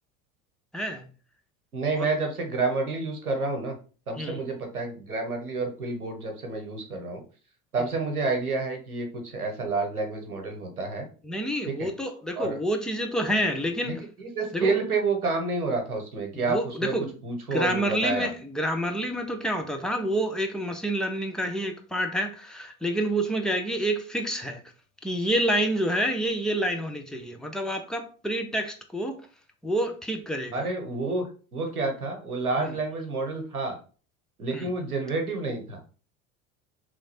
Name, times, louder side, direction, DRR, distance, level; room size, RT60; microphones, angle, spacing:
voice 1, 0.7-1.1 2.0-2.1 4.2-4.4 11.2-14.0 14.5-14.7 16.3-17.1 17.5-24.6 25.0-29.2 29.6-30.7 32.6-32.8 34.5-34.7, right 1 dB, ahead, 0.4 m, -28 dB
voice 2, 1.7-3.8 4.1-7.2 7.7-11.1 11.7-11.9 12.3-12.6 13.9-17.0 17.2-18.3 30.5-33.8 34.4-35.8, right 3 dB, 85° right, 0.9 m, -29 dB
3.0 x 2.5 x 4.1 m
figure-of-eight pair, 70°, 43 cm